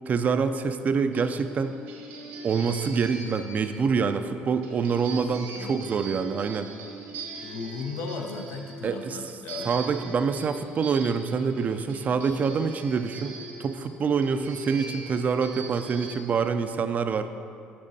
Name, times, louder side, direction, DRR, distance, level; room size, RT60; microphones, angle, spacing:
voice 1, 0.1-1.8 2.4-6.7 8.8-9.2 9.6-17.3, right 5 dB, 40° right, 9 dB, 0.4 m, -26 dB
sound 1, 1.1-16.1, right 3 dB, 75° right, 1.1 m, -41 dB
voice 2, 5.3-5.9 7.4-9.8, left 4 dB, 70° left, 4 dB, 0.6 m, -36 dB
8.6 x 6.3 x 2.7 m, 2.4 s
hypercardioid pair, 70°, 4 cm